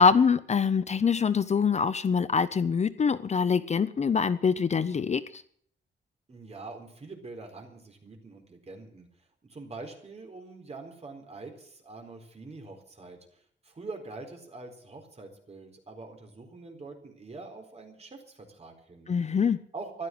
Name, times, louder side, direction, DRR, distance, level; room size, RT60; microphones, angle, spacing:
voice 1, 0.0-5.4 19.1-19.6, left 5 dB, 35° left, 14 dB, 0.6 m, -24 dB
voice 2, 6.3-19.1 19.7-20.1, right 3 dB, 35° right, 3 dB, 4.1 m, -44 dB
15.0 x 12.0 x 7.8 m, 0.63 s
wide cardioid pair, 160°, 19 cm